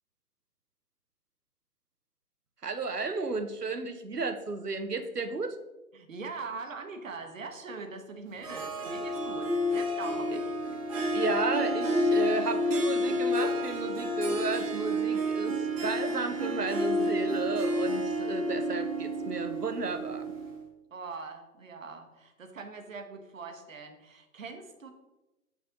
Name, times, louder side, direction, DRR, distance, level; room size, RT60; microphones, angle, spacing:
voice 1, 2.6-5.5 11.1-20.3, right 4 dB, 90° right, 8 dB, 0.8 m, -33 dB
voice 2, 5.9-10.5 20.9-24.9, right 4 dB, 55° right, 6 dB, 1.0 m, -42 dB
Harp, 8.4-20.6, equal, 20° right, 1.0 m, -30 dB
6.1 x 4.4 x 3.8 m, 1.0 s
figure-of-eight pair, 135°, 46 cm